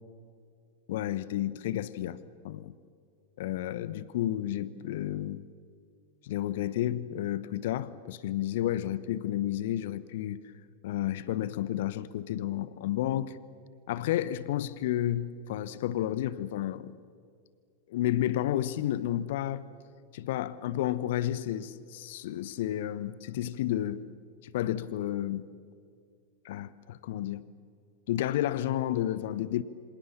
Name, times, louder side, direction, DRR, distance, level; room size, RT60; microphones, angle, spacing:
voice 1, 0.9-2.2 2.4-2.7 3.4-5.5 6.2-10.4 10.8-13.4 13.9-17.0 17.9-19.6 20.1-24.0 24.4-25.4 26.4-27.4 28.1-29.6, left 12 dB, 55° left, 1.0 m, -31 dB
27.5 x 26.0 x 7.2 m
figure-of-eight pair, 90°, 0 cm